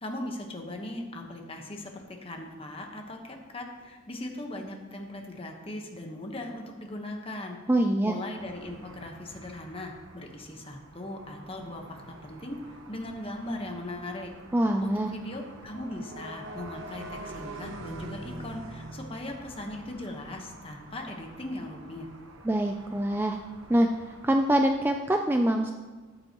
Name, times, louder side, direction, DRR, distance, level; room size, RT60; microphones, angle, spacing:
voice 1, 0.0-7.6 8.0-14.3 14.8-22.1, left 1 dB, 25° left, 2 dB, 1.1 m, -39 dB
voice 2, 7.7-8.2 14.5-15.1 22.4-23.4 23.7-23.9 24.2-25.7, right 1 dB, 10° right, 4 dB, 0.3 m, -24 dB
sound 1, 8.4-25.0, right 1 dB, 70° right, 1.1 m, -46 dB
13.0 x 8.7 x 3.0 m, 1.4 s
head